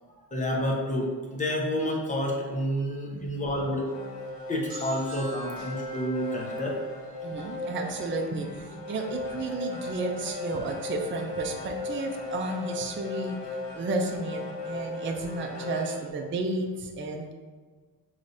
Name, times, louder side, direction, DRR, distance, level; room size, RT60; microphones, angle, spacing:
voice 1, 0.3-3.9 4.5-6.8, equal, 20° left, -1 dB, 0.8 m, -29 dB
sound 1, 3.5-16.1, left 2 dB, 85° left, 0.9 m, -37 dB
sound 2, 4.7-8.3, left 1 dB, 60° right, 0.9 m, -45 dB
voice 2, 7.2-17.3, right 2 dB, 30° right, 2 dB, 0.4 m, -33 dB
6.2 x 3.2 x 2.7 m, 1.5 s
wide cardioid pair, 140°, 41 cm